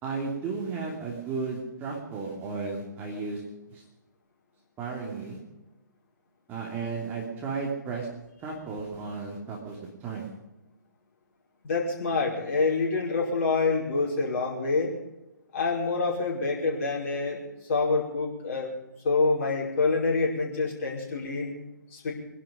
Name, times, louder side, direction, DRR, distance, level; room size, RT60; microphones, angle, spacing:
voice 1, 0.0-3.4 3.7-3.8 4.8-5.4 6.5-8.1 8.4-10.3, right 4 dB, 15° right, -2 dB, 2.9 m, -34 dB
voice 2, 11.6-14.9 15.5-18.7 19.0-21.5 21.9-22.1, left 3 dB, 40° left, -2 dB, 5.2 m, -27 dB
22.5 x 11.5 x 5.3 m, 0.98 s
figure-of-eight pair, 130°, 11 cm